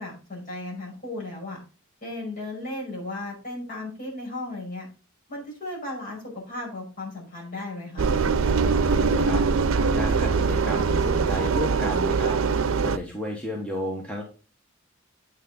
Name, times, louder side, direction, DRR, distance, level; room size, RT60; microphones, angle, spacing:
voice 1, 0.0-1.6 2.0-4.9 5.3-8.1, left 2 dB, 40° left, -3 dB, 5.5 m, -35 dB
Engine, 8.0-13.0, right 5 dB, 85° right, 0.5 m, -22 dB
voice 2, 8.6-9.4 9.9-12.6 12.8-14.2, equal, 5° left, -1 dB, 1.3 m, -32 dB
8.4 x 6.4 x 3.9 m, 0.34 s
head